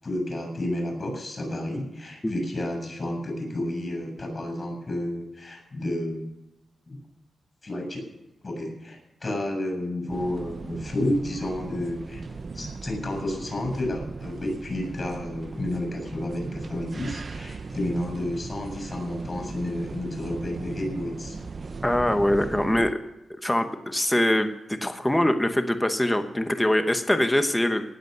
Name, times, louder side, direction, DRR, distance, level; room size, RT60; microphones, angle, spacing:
voice 1, 0.0-6.2 6.9-7.0 7.6-8.0 8.4-12.2 12.5-21.4, left 1 dB, 30° left, 3 dB, 7.2 m, -31 dB
sound 1, 10.1-22.9, right 4 dB, 40° right, 0.7 m, -38 dB
voice 2, 21.8-22.9 23.4-27.8, left 1 dB, 10° left, 8 dB, 1.0 m, -23 dB
18.5 x 8.1 x 6.8 m, 0.94 s
wide cardioid pair, 150°, 0 cm